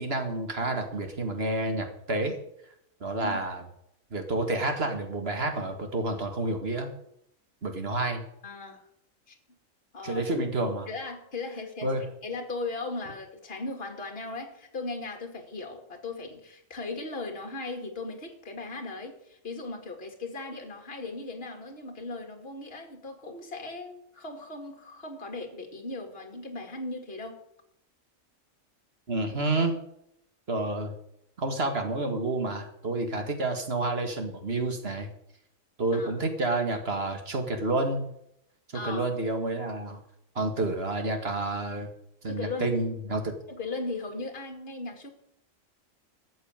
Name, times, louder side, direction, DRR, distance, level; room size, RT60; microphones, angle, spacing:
voice 1, 0.0-2.4 3.0-3.6 4.1-6.9 7.6-8.2 10.0-10.9 11.8-12.0 29.1-29.8 30.5-30.9 31.4-35.1 35.8-38.1 38.8-40.0 40.4-41.9 42.2-43.3, right 2 dB, 50° right, 5 dB, 2.0 m, -29 dB
voice 2, 8.4-8.8 9.3-9.4 9.9-10.3 10.9-11.9 12.2-27.4 35.9-36.2 38.7-39.1 42.2-42.8 43.5-45.1, left 3 dB, 45° left, 4 dB, 2.3 m, -37 dB
13.5 x 6.8 x 8.9 m, 0.76 s
omnidirectional pair, 1.4 m